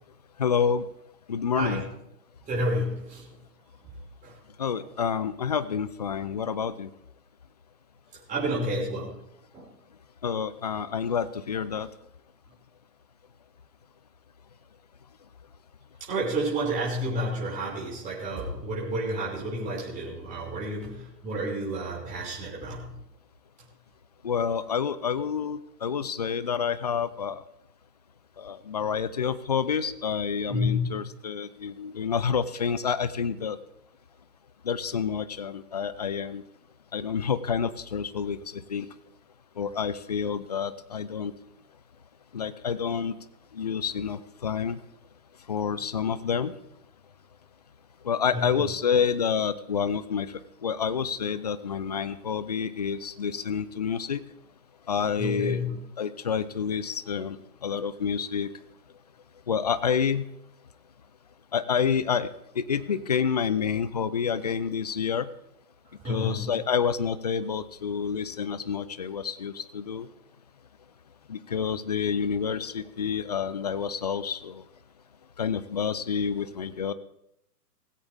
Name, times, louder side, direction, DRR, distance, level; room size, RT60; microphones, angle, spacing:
voice 1, 0.4-0.9 1.3-1.8 4.6-6.9 10.2-11.9 24.2-27.4 28.4-33.6 34.6-36.4 36.9-38.9 39.6-41.3 42.3-43.2 43.5-44.8 45.5-46.5 48.0-54.2 54.9-55.6 56.0-58.5 59.5-60.2 61.5-65.3 66.0-70.1 71.3-74.6 75.4-76.9, left 7 dB, 25° left, 15 dB, 0.4 m, -28 dB
voice 2, 2.5-3.4 4.2-4.3 4.7-4.8 8.3-9.2 9.5-9.7 16.1-22.9 30.5-30.9 48.3-48.7 55.2-55.8 66.0-66.5, equal, 15° right, -6 dB, 5.6 m, -30 dB
18.0 x 16.0 x 3.5 m, 0.80 s
figure-of-eight pair, 130°, 49 cm